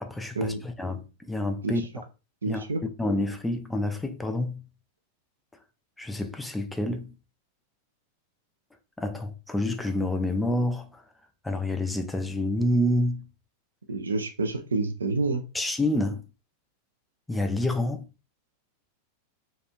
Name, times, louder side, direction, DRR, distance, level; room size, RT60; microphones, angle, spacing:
voice 1, 0.0-2.0 2.5-2.6 3.0-4.6 6.0-7.1 9.0-11.0 11.4-13.3 15.5-16.2 17.3-18.0, left 1 dB, 5° left, 0.3 m, -28 dB
voice 2, 2.4-2.8 13.9-15.4, right 3 dB, 75° right, 0.4 m, -28 dB
2.9 x 2.4 x 2.2 m
figure-of-eight pair, 90°, 0 cm